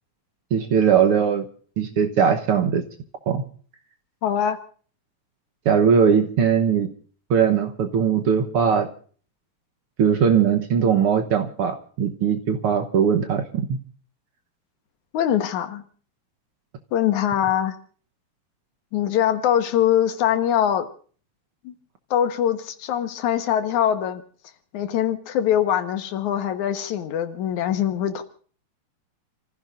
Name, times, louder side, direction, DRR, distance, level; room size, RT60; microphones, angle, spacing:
voice 1, 0.5-1.4 1.8-2.8 3.3-3.4 5.6-6.9 7.3-8.9 10.0-13.7, right 7 dB, 60° right, 6 dB, 1.7 m, -20 dB
voice 2, 4.2-4.6 15.1-15.8 16.9-17.8 18.9-20.9 21.6-21.7 22.1-24.2 24.7-28.2, left 10 dB, 85° left, 8 dB, 2.7 m, -22 dB
30.0 x 15.0 x 2.6 m, 0.43 s
omnidirectional pair, 3.3 m